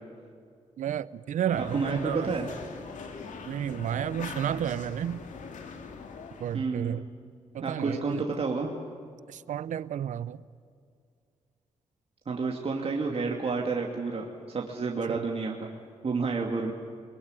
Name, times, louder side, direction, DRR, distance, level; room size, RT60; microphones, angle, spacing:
voice 1, 0.8-2.3 3.5-5.2 6.4-7.0 7.5-8.2 9.3-10.4 15.1-15.2, right 10 dB, 75° right, 19 dB, 0.7 m, -31 dB
sound 1, 1.5-6.6, left 5 dB, 75° left, 2.6 m, -42 dB
voice 2, 1.7-2.5 6.5-7.0 7.6-8.7 12.3-15.7 16.0-16.7, right 4 dB, 50° right, 0 dB, 2.7 m, -30 dB
22.5 x 22.0 x 9.8 m, 2.2 s
cardioid pair, 60°, 13 cm